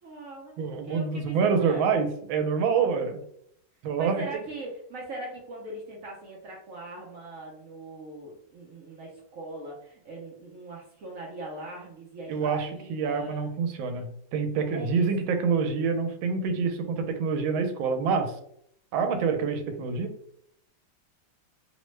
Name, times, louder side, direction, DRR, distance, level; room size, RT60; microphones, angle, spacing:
voice 1, 0.0-2.1 2.6-2.7 4.0-13.5 14.7-15.4, right 2 dB, 70° right, -3 dB, 0.8 m, -40 dB
voice 2, 0.6-3.2 3.8-4.1 12.3-18.3 18.9-20.1, right 5 dB, 90° right, 6 dB, 1.4 m, -26 dB
3.2 x 2.1 x 3.1 m, 0.69 s
omnidirectional pair, 2.1 m